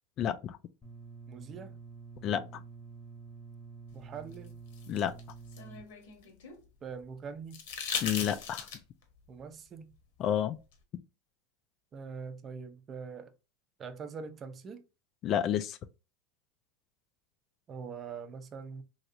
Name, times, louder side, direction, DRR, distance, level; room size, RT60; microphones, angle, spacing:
voice 1, 0.2-0.6 2.2-2.4 4.9-5.1 8.0-8.7 10.2-10.6 15.2-15.8, left 10 dB, 45° left, 0.3 m, -30 dB
sound 1, 0.8-5.8, right 4 dB, 15° left, 0.9 m, -48 dB
voice 2, 1.3-1.8 3.9-4.6 6.8-7.6 9.3-9.9 11.9-13.3 13.8-14.8 17.7-18.8, right 5 dB, 30° right, 0.5 m, -43 dB
sound 2, 4.3-6.6 7.5-9.0 10.7-10.8, left 6 dB, 75° left, 0.9 m, -38 dB
3.1 x 2.7 x 2.6 m
hypercardioid pair, 110°, 0 cm